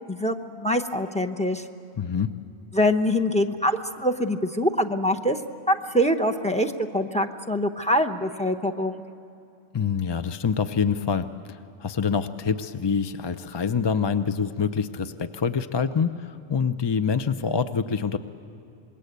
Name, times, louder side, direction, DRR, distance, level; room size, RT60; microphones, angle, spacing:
voice 1, 0.1-1.6 2.7-5.4 5.7-9.0, equal, 5° left, 7 dB, 0.7 m, -24 dB
voice 2, 2.0-2.3 9.7-18.2, left 6 dB, 35° left, 10 dB, 0.4 m, -26 dB
26.5 x 21.5 x 8.0 m, 2.7 s
omnidirectional pair, 1.2 m